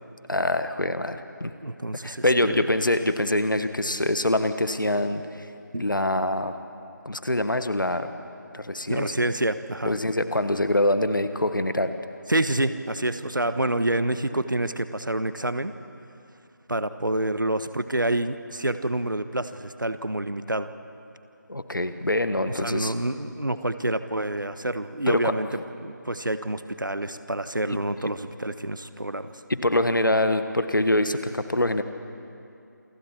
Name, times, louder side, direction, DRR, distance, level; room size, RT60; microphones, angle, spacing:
voice 1, 0.3-1.5 2.0-5.5 5.7-6.5 7.0-8.1 8.5-9.1 9.8-11.9 21.5-22.9 25.1-25.3 27.7-27.8 29.5-31.8, left 1 dB, 80° left, 9 dB, 1.6 m, -24 dB
voice 2, 1.6-2.6 5.7-5.8 8.9-9.9 12.3-15.7 16.7-20.7 22.4-25.5 25.8-29.4, right 1 dB, 85° right, 11 dB, 1.3 m, -27 dB
28.0 x 24.5 x 4.5 m, 2.6 s
figure-of-eight pair, 165°, 11 cm